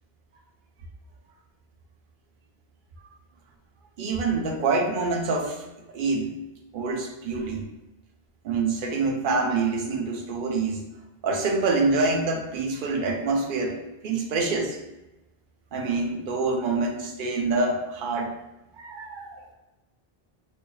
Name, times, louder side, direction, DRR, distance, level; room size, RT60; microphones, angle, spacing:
voice 1, 4.0-5.6 5.9-6.3 6.7-7.7 8.4-10.8 11.2-13.8 14.0-14.8 15.7-18.3 18.7-19.4, right 3 dB, 60° right, 2 dB, 0.7 m, -26 dB
4.6 x 2.6 x 2.3 m, 1.0 s
omnidirectional pair, 1.1 m